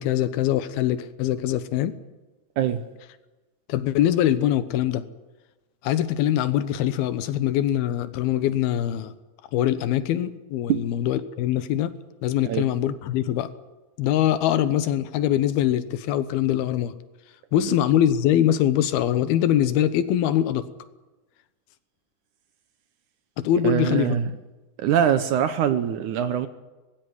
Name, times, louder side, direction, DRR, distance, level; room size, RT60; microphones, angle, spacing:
voice 1, 0.0-1.9 3.7-5.0 5.8-9.1 9.5-11.9 12.2-13.5 14.0-16.9 17.5-20.7 23.4-24.2, left 11 dB, 85° left, 3.0 m, -23 dB
voice 2, 23.6-24.3 24.8-26.5, right 9 dB, 70° right, 2.0 m, -23 dB
20.5 x 16.0 x 9.8 m
omnidirectional pair, 4.3 m